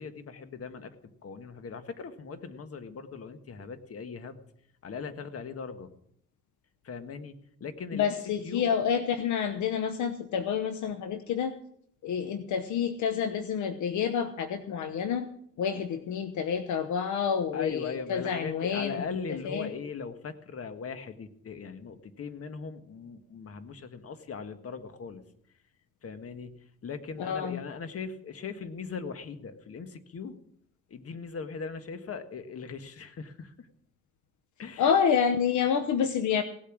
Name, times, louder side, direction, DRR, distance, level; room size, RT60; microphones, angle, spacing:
voice 1, 0.0-4.4 4.8-5.9 6.8-8.1 8.4-8.8 17.5-25.2 26.0-30.4 30.9-33.7 34.6-34.9, left 5 dB, 50° left, 9 dB, 1.6 m, -39 dB
voice 2, 7.9-11.5 12.0-15.3 15.6-19.0 19.4-19.7 27.2-27.6 34.8-36.4, left 7 dB, 75° left, 9 dB, 1.0 m, -28 dB
17.5 x 8.7 x 6.1 m, 0.68 s
cardioid pair, 90°, 30 cm